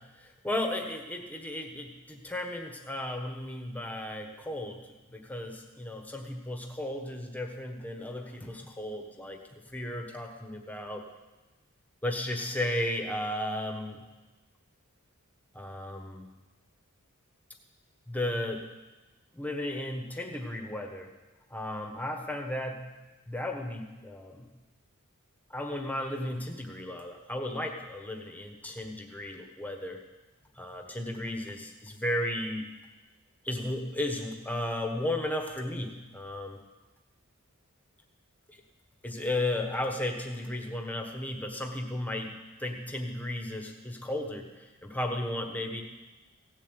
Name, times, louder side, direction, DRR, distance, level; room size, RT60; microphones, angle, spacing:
voice 1, 0.0-11.1 12.0-14.0 15.5-16.3 18.1-18.7 19.3-21.1 21.5-22.8 23.3-24.5 25.5-30.0 30.6-32.7 33.4-36.6 38.5-38.6 39.0-42.3 42.6-45.8, left 1 dB, 5° left, 3 dB, 1.3 m, -34 dB
16.5 x 7.4 x 8.2 m, 1.1 s
head